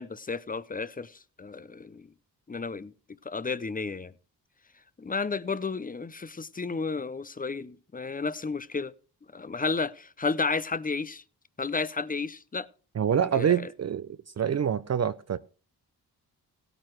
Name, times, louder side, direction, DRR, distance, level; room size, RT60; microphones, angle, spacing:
voice 1, 0.0-2.1 2.5-2.9 3.2-4.1 5.0-8.9 9.3-11.2 11.6-12.7 13.3-13.6, left 4 dB, 20° left, 0.6 m, -32 dB
voice 2, 12.9-14.1 14.4-15.4, right 8 dB, 40° right, 0.5 m, -26 dB
16.5 x 9.0 x 3.1 m
cardioid pair, 60°, 40 cm